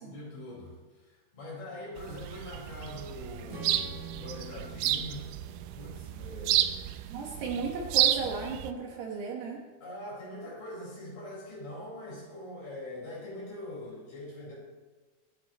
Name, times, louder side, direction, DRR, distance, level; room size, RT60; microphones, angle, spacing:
voice 1, 0.0-6.8 7.1-7.2 9.8-14.6, left 1 dB, 40° left, -5 dB, 6.2 m, -43 dB
sound 1, 2.0-8.7, right 12 dB, 85° right, 2.4 m, -31 dB
Strum, 3.5-7.8, right 4 dB, 20° right, 1.5 m, -48 dB
voice 2, 7.1-9.6, right 4 dB, 70° right, -1 dB, 3.2 m, -35 dB
24.5 x 10.5 x 3.1 m, 1.3 s
omnidirectional pair, 5.5 m